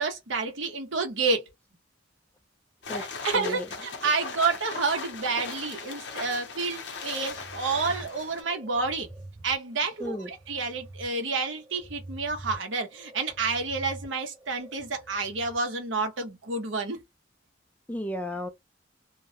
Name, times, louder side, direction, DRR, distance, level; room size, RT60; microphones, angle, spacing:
voice 1, 0.0-1.4 2.9-9.1 9.4-17.0, right 4 dB, 75° right, 0.9 m, -29 dB
sound 1, 2.8-8.4, left 4 dB, 60° left, 0.6 m, -38 dB
voice 2, 3.3-3.7 10.0-10.3 17.9-18.5, left 1 dB, 10° left, 0.3 m, -33 dB
sound 2, 7.0-15.6, right 2 dB, 20° right, 0.9 m, -46 dB
2.3 x 2.0 x 2.7 m
head